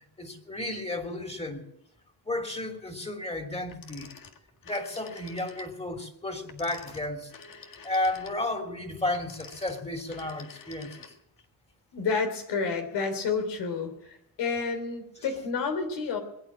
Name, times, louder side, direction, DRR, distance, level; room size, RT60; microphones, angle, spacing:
voice 1, 0.0-1.7 2.2-4.1 4.6-7.3 7.6-11.1, left 2 dB, 15° left, 4 dB, 3.2 m, -33 dB
Telephone, 3.7-5.8 6.4-11.4, left 5 dB, 55° left, 1.9 m, -49 dB
voice 2, 11.9-16.2, left 5 dB, 80° left, 6 dB, 3.4 m, -30 dB
21.5 x 9.1 x 7.4 m, 0.81 s
cardioid pair, 70°, 40 cm